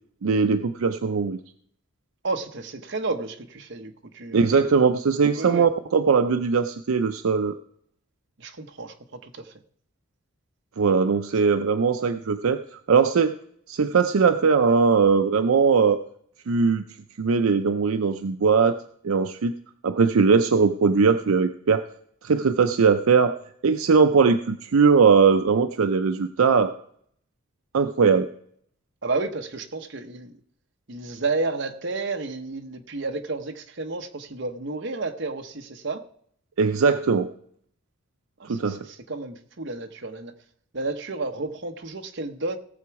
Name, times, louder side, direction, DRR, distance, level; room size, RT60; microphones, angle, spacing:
voice 1, 0.2-1.4 4.3-7.5 10.8-13.3 13.7-16.0 16.5-16.8 17.2-19.5 19.8-21.8 22.2-23.4 23.6-26.7 27.7-28.3 36.6-37.3 38.5-38.9, right 5 dB, 75° right, 9 dB, 0.5 m, -20 dB
voice 2, 2.2-4.7 5.4-5.7 8.4-8.9 9.2-9.5 29.0-30.3 30.9-36.0 38.4-40.3 40.7-42.6, right 3 dB, 55° right, 5 dB, 0.9 m, -31 dB
17.5 x 7.0 x 4.7 m, 0.65 s
head